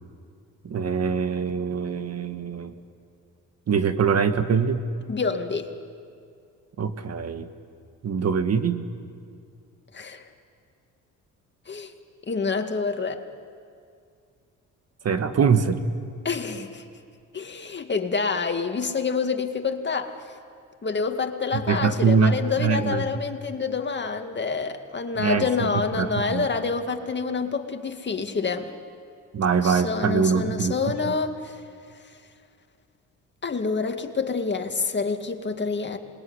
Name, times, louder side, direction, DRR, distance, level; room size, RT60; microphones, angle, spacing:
voice 1, 0.6-2.7 3.7-4.8 6.8-7.5 8.0-8.8 15.0-15.8 21.5-23.0 25.1-25.7 25.9-26.4 29.3-31.1, right 6 dB, 50° right, 9 dB, 1.8 m, -23 dB
voice 2, 5.1-5.7 9.9-10.3 11.7-11.9 12.3-13.2 16.2-16.8 17.3-20.1 20.8-28.7 29.6-31.6 33.4-36.0, left 4 dB, 35° left, 5 dB, 2.3 m, -27 dB
27.0 x 22.0 x 9.8 m, 2.3 s
cardioid pair, 80°, 33 cm